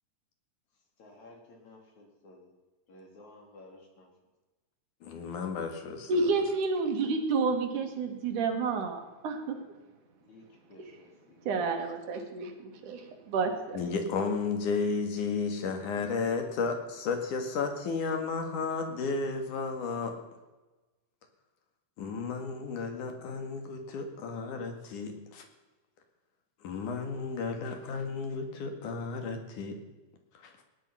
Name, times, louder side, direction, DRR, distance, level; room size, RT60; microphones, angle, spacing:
voice 1, 1.0-2.5 2.9-4.1 10.2-11.7, left 2 dB, 70° left, 1 dB, 4.5 m, -54 dB
voice 2, 5.0-6.1 13.7-20.1 22.0-25.5 26.6-29.8 30.4-30.5, left 4 dB, 90° left, 5 dB, 3.5 m, -33 dB
voice 3, 6.1-9.6 11.5-13.8, right 4 dB, 85° right, 4 dB, 3.4 m, -30 dB
18.0 x 10.0 x 5.7 m, 1.2 s
omnidirectional pair, 3.4 m